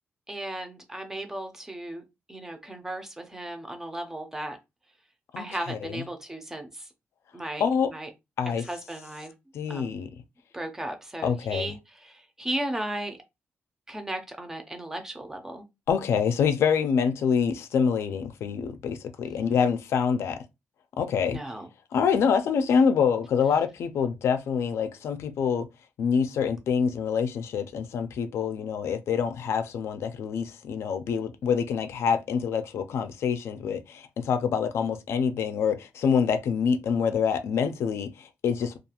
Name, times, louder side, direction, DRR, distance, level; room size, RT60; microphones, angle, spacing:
voice 1, 0.3-2.0 2.3-4.6 5.4-6.9 7.3-8.1 8.6-9.3 9.7-10.0 10.5-13.2 13.9-15.6 19.3-19.6 21.2-21.7, right 1 dB, 10° right, 0.4 m, -36 dB
voice 2, 5.3-6.0 7.6-7.9 8.4-8.6 9.5-10.1 11.2-11.7 15.9-20.4 21.0-21.4 21.9-25.7 26.0-38.8, left 6 dB, 75° left, 0.3 m, -26 dB
2.3 x 2.3 x 2.8 m
wide cardioid pair, 175°, 4 cm